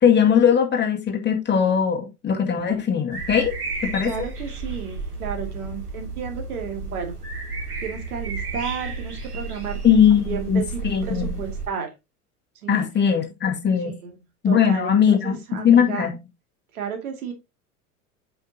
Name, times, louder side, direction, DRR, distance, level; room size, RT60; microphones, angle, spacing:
voice 1, 0.0-3.5 3.8-4.3 9.8-11.4 12.7-13.9 14.4-16.2, left 8 dB, 25° left, 1.9 m, -20 dB
sound 1, 3.1-11.7, right 3 dB, 85° right, 2.4 m, -32 dB
voice 2, 4.0-7.1 7.8-11.9 12.6-12.8 13.8-14.2 14.5-16.1 16.7-17.3, right 7 dB, 70° right, 2.4 m, -33 dB
7.9 x 5.9 x 2.8 m
figure-of-eight pair, 90°, 45 cm